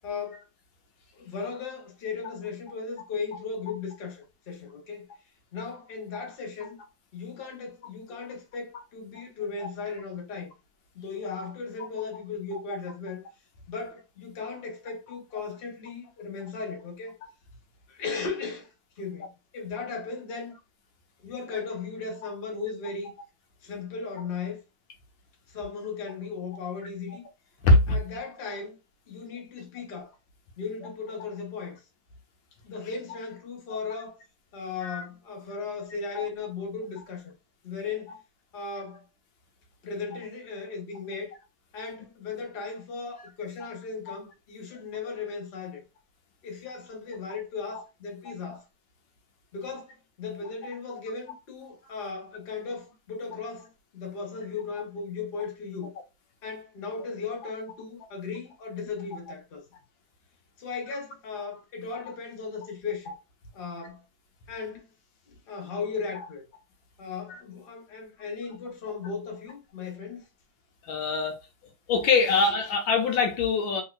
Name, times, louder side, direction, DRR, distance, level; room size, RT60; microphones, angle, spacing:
voice 1, 0.0-0.4 1.2-5.1 5.5-6.8 7.1-10.5 10.9-13.2 13.7-17.2 17.9-18.7 19.0-19.3 19.5-20.5 21.2-23.1 23.6-24.6 25.5-27.2 27.9-28.8 29.1-30.1 30.6-31.8 32.6-34.2 34.5-37.3 37.6-38.2 38.5-39.0 39.8-41.3 41.7-45.8 46.4-48.6 49.5-55.9 56.4-59.6 60.6-63.1 63.5-64.0 64.5-64.8 65.2-66.4 67.0-70.2, left 5 dB, 40° left, 0.8 m, -36 dB
voice 2, 27.6-28.0 34.8-35.0 36.1-36.2 44.1-44.2 67.3-67.4 70.8-71.4 71.9-73.8, left 3 dB, 75° left, 1.4 m, -23 dB
3.2 x 2.8 x 2.2 m
omnidirectional pair, 2.2 m